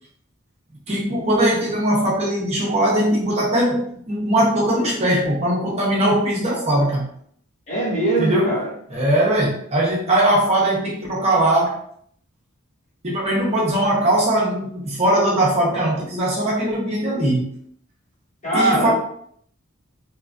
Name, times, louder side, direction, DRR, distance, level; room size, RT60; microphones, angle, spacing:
voice 1, 0.9-7.0 8.2-8.6 8.9-11.8 13.0-17.5 18.5-18.9, right 1 dB, 30° right, -4 dB, 0.7 m, -20 dB
voice 2, 7.7-8.7 18.4-18.9, right 2 dB, 35° left, -3 dB, 0.6 m, -21 dB
2.9 x 2.3 x 2.4 m, 0.64 s
head